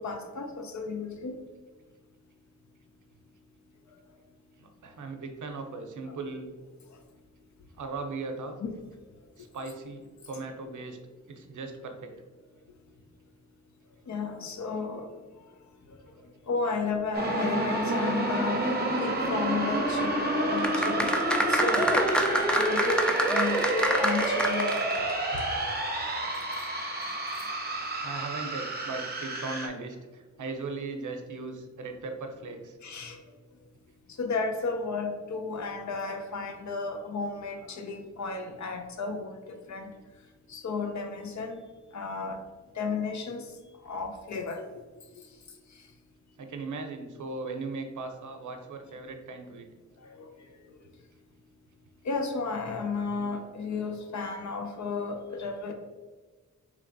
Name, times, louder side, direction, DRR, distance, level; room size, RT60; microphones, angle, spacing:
voice 1, 0.0-1.4 6.1-6.2 8.6-8.7 14.1-15.1 16.5-18.7 19.0-21.1 21.5-22.0 22.5-24.9 25.3-25.4 32.8-33.2 34.2-39.9 40.5-41.6 41.9-42.4 42.8-43.4 43.8-44.6 50.1-50.3 52.0-55.7, left 4 dB, 70° left, 5 dB, 0.6 m, -33 dB
voice 2, 4.6-6.5 7.8-8.6 9.4-11.0 11.3-12.1 28.0-32.8 46.4-49.7, right 3 dB, 90° right, 5 dB, 0.6 m, -38 dB
sound 1, 17.1-29.7, right 2 dB, 35° right, 0.7 m, -29 dB
sound 2, 20.6-25.1 25.4-25.5, equal, 5° left, 0.3 m, -27 dB
3.2 x 3.2 x 3.9 m, 1.3 s
wide cardioid pair, 140°, 30 cm